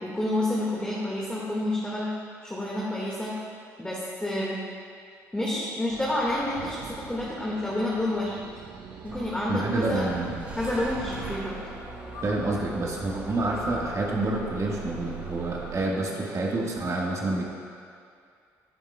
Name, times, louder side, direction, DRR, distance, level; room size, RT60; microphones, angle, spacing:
voice 1, 0.0-2.1 2.4-3.4 3.8-4.6 5.3-8.5 9.0-10.1 10.6-11.6, left 1 dB, 10° left, -6 dB, 1.8 m, -29 dB
sound 1, 5.9-11.4, right 7 dB, 65° right, 0.6 m, -43 dB
sound 2, 6.1-6.6 11.9-12.9 13.3-13.7 14.2-14.4, left 3 dB, 60° left, 1.8 m, -45 dB
Bus / Engine starting, 9.0-15.8, right 3 dB, 20° right, 1.9 m, -41 dB
voice 2, 9.5-10.3 12.2-17.4, right 2 dB, 40° right, -2 dB, 1.5 m, -28 dB
14.0 x 7.2 x 2.3 m, 2.3 s
hypercardioid pair, 50°, 8 cm